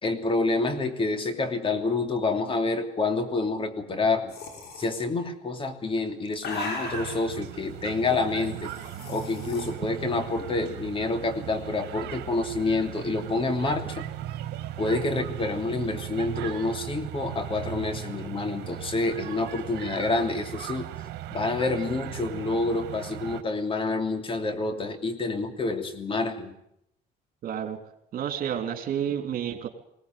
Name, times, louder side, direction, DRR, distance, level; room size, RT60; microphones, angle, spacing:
voice 1, 0.0-4.3 4.8-8.7 9.1-14.1 14.8-20.9 21.3-26.5, left 3 dB, 30° left, 7 dB, 3.0 m, -28 dB
sound 1, 4.3-4.9 5.9-7.3 8.4-9.7, left 2 dB, 75° left, 6.1 m, -37 dB
sound 2, 6.8-23.4, right 13 dB, 80° right, 1.5 m, -38 dB
voice 2, 27.4-27.8 28.1-29.7, right 9 dB, 60° right, 6 dB, 3.4 m, -30 dB
21.0 x 18.0 x 9.3 m, 0.75 s
cardioid pair, 110°, 17 cm